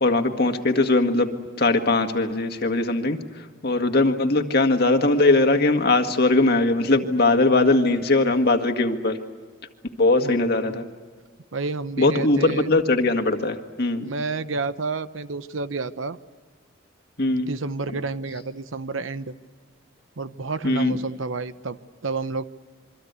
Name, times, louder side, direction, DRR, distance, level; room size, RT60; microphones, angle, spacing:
voice 1, 0.0-1.3 1.6-9.2 10.0-10.9 12.0-14.1 17.2-17.5 20.6-21.0, left 2 dB, 50° left, 5 dB, 1.8 m, -20 dB
voice 2, 10.2-10.8 11.5-12.7 14.0-16.2 17.3-19.3 20.2-21.8 22.0-22.4, right 4 dB, 80° right, 13 dB, 0.9 m, -30 dB
27.0 x 24.0 x 8.2 m, 1.4 s
head